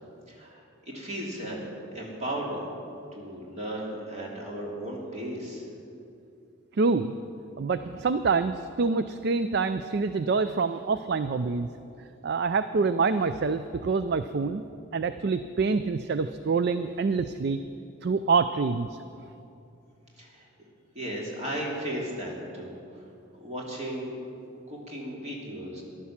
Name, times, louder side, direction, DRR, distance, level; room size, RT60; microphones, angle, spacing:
voice 1, 0.3-1.6 1.9-2.7 3.1-5.6 20.2-20.5 20.9-22.7 23.4-24.1 24.7-25.8, right 1 dB, 30° right, -3 dB, 2.8 m, -35 dB
voice 2, 6.7-7.2 7.6-11.7 12.2-14.7 14.9-17.6 18.0-19.0, right 4 dB, 50° right, 11 dB, 0.4 m, -26 dB
14.0 x 11.5 x 7.3 m, 2.7 s
head